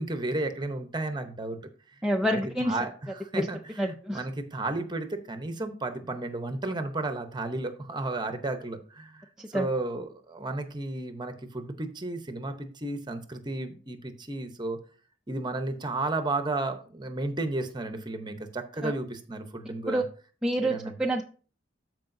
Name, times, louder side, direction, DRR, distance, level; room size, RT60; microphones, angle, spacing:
voice 1, 0.0-1.6 2.2-14.8 15.3-20.0 20.6-20.9, right 2 dB, 20° right, 7 dB, 0.8 m, -33 dB
voice 2, 2.0-2.8 3.4-3.5 3.8-4.2 9.4-9.7 18.8-18.9 19.9-20.0 20.4-20.7 21.0-21.2, equal, 5° right, 1 dB, 0.4 m, -27 dB
13.5 x 4.7 x 2.7 m, 0.40 s
head